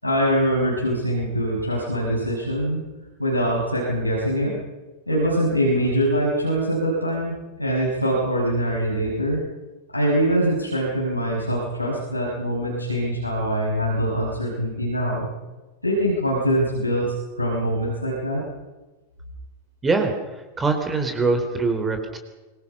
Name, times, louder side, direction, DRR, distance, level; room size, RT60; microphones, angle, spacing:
voice 1, 0.0-2.8 3.2-4.6 5.1-9.4 9.9-15.3 15.8-17.1 17.4-18.4, equal, 85° left, -4 dB, 6.0 m, -23 dB
voice 2, 20.6-22.2, right 4 dB, 15° right, 6 dB, 4.0 m, -22 dB
25.0 x 23.5 x 5.7 m, 1.1 s
figure-of-eight pair, 90°, 0 cm